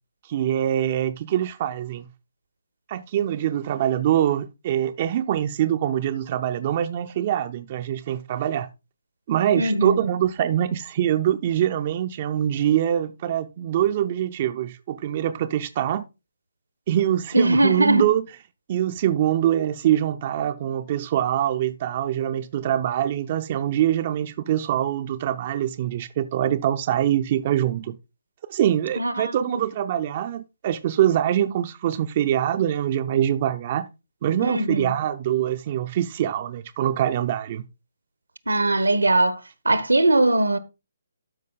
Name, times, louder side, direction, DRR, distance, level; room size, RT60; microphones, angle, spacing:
voice 1, 0.2-2.1 2.9-8.7 9.3-16.0 16.9-18.2 18.7-28.0 28.5-33.9 34.2-37.6, right 11 dB, 35° right, 0.6 m, -24 dB
voice 2, 9.5-10.0 17.3-18.1 29.0-29.6 34.4-34.9 38.5-40.6, right 2 dB, 80° right, 1.1 m, -21 dB
12.5 x 5.3 x 3.9 m
figure-of-eight pair, 140°, 0 cm